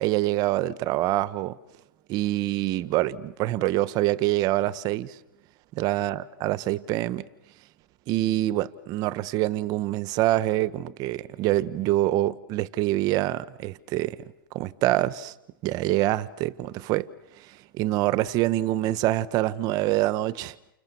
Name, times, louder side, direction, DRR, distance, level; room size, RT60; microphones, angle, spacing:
voice 1, 0.0-1.6 2.1-5.2 5.8-7.3 8.1-14.2 14.5-15.3 15.6-17.1 17.4-20.5, right 15 dB, 35° right, 1.2 m, -25 dB
29.5 x 28.5 x 7.1 m
hypercardioid pair, 140°, 11 cm